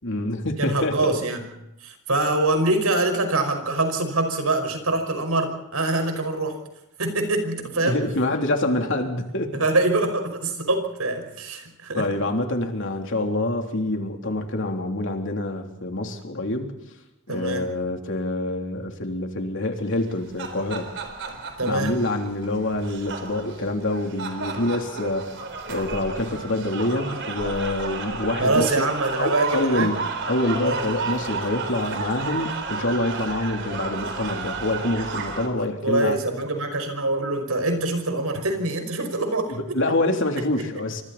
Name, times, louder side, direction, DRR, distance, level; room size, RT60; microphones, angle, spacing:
voice 1, 0.0-1.1 7.8-9.6 11.9-16.7 17.3-20.9 21.6-25.4 25.7-28.9 29.2-30.0 30.3-36.2 39.5-41.0, left 1 dB, 60° left, 3 dB, 3.4 m, -26 dB
voice 2, 0.6-1.4 1.8-6.6 7.0-8.0 9.6-12.1 17.3-17.7 21.6-21.9 28.4-30.0 30.7-30.8 35.6-39.6, right 2 dB, 85° right, 6 dB, 5.4 m, -24 dB
sound 1, 20.0-35.5, right 4 dB, 55° right, 4.1 m, -32 dB
28.0 x 25.0 x 4.3 m, 0.89 s
head